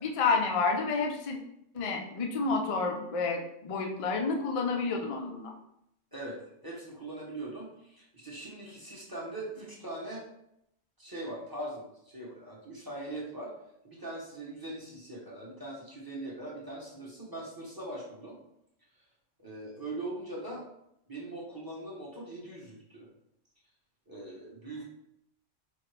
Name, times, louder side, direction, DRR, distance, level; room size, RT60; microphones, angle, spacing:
voice 1, 0.0-1.4 1.7-5.5, left 4 dB, 50° left, 2 dB, 0.4 m, -29 dB
voice 2, 6.1-10.2 11.0-13.5 13.8-18.4 19.4-20.6 21.1-23.1 24.1-24.8, right 1 dB, 20° right, -4 dB, 0.8 m, -41 dB
4.6 x 2.5 x 3.2 m, 0.79 s
omnidirectional pair, 1.3 m